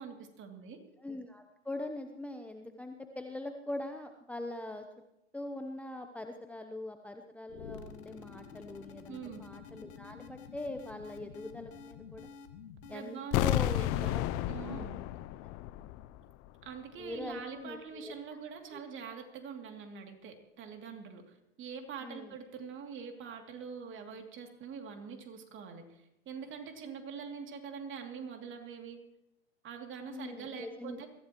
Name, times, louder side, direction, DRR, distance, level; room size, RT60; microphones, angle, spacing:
voice 1, 0.0-0.8 9.1-9.4 12.9-13.5 13.8-15.0 16.6-29.0 29.6-31.1, right 6 dB, 35° right, 4 dB, 2.8 m, -44 dB
voice 2, 1.0-4.9 5.3-12.3 12.9-14.9 15.4-15.5 15.8-15.9 17.0-18.1 18.7-18.8 22.0-22.3 30.0-31.0, left 1 dB, 5° left, 5 dB, 0.9 m, -42 dB
sound 1, 7.5-13.3, left 6 dB, 75° left, 1.7 m, -50 dB
sound 2, 13.3-16.2 16.5-16.6, left 15 dB, 40° left, 0.6 m, -32 dB
23.0 x 15.5 x 3.1 m, 0.86 s
hypercardioid pair, 95°, 34 cm